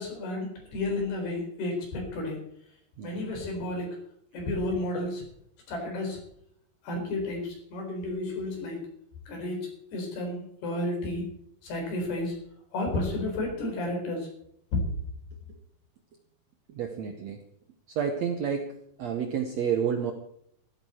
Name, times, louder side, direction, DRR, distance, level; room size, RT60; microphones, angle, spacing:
voice 1, 0.0-2.4 3.0-4.0 4.3-5.2 5.7-6.2 6.8-8.9 9.3-11.3 11.6-12.4 12.7-14.3 14.7-14.8, left 2 dB, 85° left, 1 dB, 6.3 m, -32 dB
voice 2, 16.7-17.4 17.9-20.1, right 7 dB, 75° right, 6 dB, 1.6 m, -30 dB
15.0 x 13.0 x 4.4 m, 0.72 s
omnidirectional pair, 4.4 m